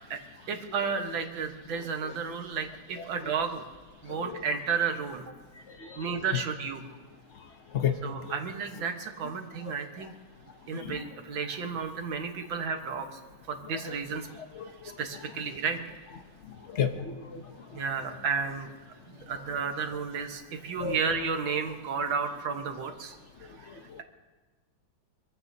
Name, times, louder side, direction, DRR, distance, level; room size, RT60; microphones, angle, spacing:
voice 1, 0.1-3.6 4.0-5.3 6.0-6.8 8.0-10.1 10.7-13.2 13.5-14.3 14.8-15.8 17.7-18.7 19.1-23.1 23.4-23.7, right 5 dB, 75° right, 5 dB, 2.0 m, -32 dB
voice 2, 4.1-4.4 5.7-6.1 7.7-7.9 8.2-8.3 10.7-11.1 14.5-14.7 16.7-17.4 20.8-21.0 23.7-24.0, left 8 dB, 55° left, 7 dB, 0.8 m, -32 dB
26.0 x 15.0 x 2.8 m, 1.3 s
omnidirectional pair, 2.2 m